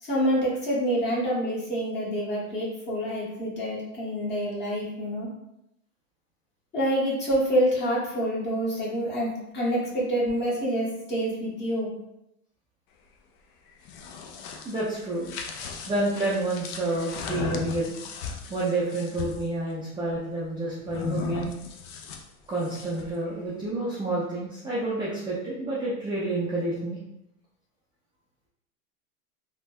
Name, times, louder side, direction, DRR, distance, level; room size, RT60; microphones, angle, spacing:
voice 1, 0.0-5.3 6.7-11.9, equal, 25° left, -5 dB, 1.2 m, -27 dB
sound 1, 13.7-19.5 20.9-23.2, left 6 dB, 45° left, 0.4 m, -37 dB
voice 2, 14.6-15.3 15.9-17.9 18.5-21.5 22.5-27.0, right 2 dB, 10° right, -8 dB, 0.5 m, -29 dB
3.3 x 2.2 x 2.6 m, 0.83 s
hypercardioid pair, 110°, 45 cm